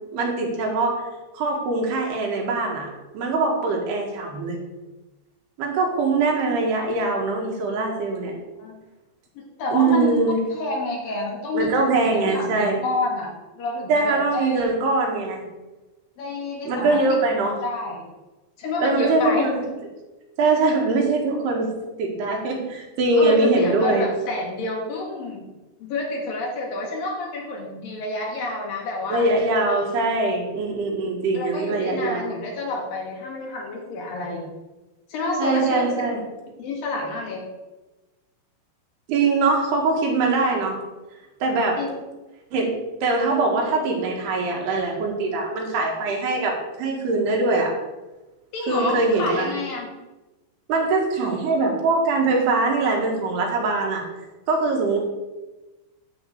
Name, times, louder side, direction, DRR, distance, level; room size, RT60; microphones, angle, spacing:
voice 1, 0.1-1.1 1.3-2.9 3.1-4.6 5.6-8.3 9.7-10.4 11.5-12.8 13.9-15.4 16.7-17.6 18.8-19.6 20.4-24.1 29.1-32.4 35.4-36.2 39.1-40.8 41.4-41.8 42.5-42.7 43.0-47.7 48.7-49.5 50.7-54.0 54.5-55.0, right 3 dB, 80° right, 0 dB, 4.0 m, -22 dB
voice 2, 9.4-10.2 10.6-14.7 16.2-17.2 17.6-18.0 18.6-19.5 23.1-25.5 25.8-29.3 31.3-34.5 35.1-35.9 36.6-37.4 41.8-41.9 48.5-49.9, left 2 dB, 65° left, -1 dB, 3.9 m, -28 dB
10.5 x 5.2 x 7.8 m, 1.1 s
omnidirectional pair, 4.6 m